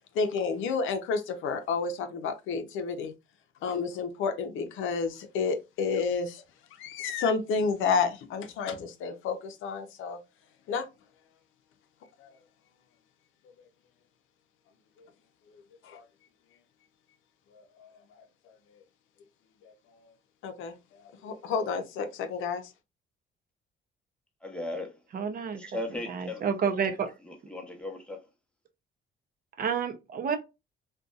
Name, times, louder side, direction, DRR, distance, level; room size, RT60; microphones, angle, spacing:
voice 1, 0.1-3.1 3.6-6.4 6.7-10.2 10.7-10.9 12.2-12.3 15.0-15.1 15.5-16.0 17.5-17.9 18.2-18.3 18.7-18.8 19.6-20.1 20.4-22.7, left 5 dB, 85° left, 0.5 m, -31 dB
voice 2, 24.4-25.0 25.6-26.4 27.2-28.2, left 1 dB, 5° left, 0.7 m, -37 dB
voice 3, 25.1-25.6 26.4-27.1 29.6-30.4, right 6 dB, 45° right, 0.5 m, -29 dB
2.6 x 2.2 x 2.3 m
cardioid pair, 90°, 20 cm